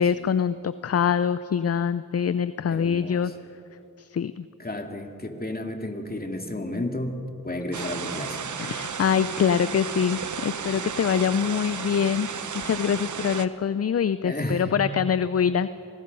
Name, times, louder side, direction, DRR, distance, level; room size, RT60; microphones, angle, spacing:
voice 1, 0.0-3.3 4.0-4.4 8.6-12.3 12.5-15.7, left 7 dB, 50° left, 14 dB, 0.5 m, -24 dB
voice 2, 2.7-3.3 4.6-7.2 7.4-8.4 14.2-14.7, left 1 dB, 30° left, 3 dB, 2.7 m, -32 dB
sound 1, 7.7-13.5, right 6 dB, 65° right, 1.0 m, -33 dB
25.5 x 19.5 x 5.5 m, 2.8 s
cardioid pair, 45°, 33 cm